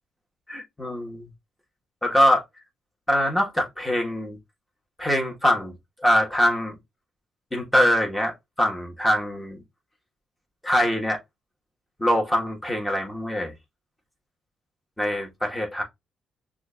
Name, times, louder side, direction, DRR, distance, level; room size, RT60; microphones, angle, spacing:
voice 1, 0.5-1.3 2.0-2.4 3.1-4.4 5.0-5.7 6.0-6.7 7.5-9.6 10.6-11.2 12.0-13.5 15.0-15.8, equal, 10° left, 1.4 m, -23 dB
6.1 x 2.4 x 2.4 m
cardioid pair, 90°, 0 cm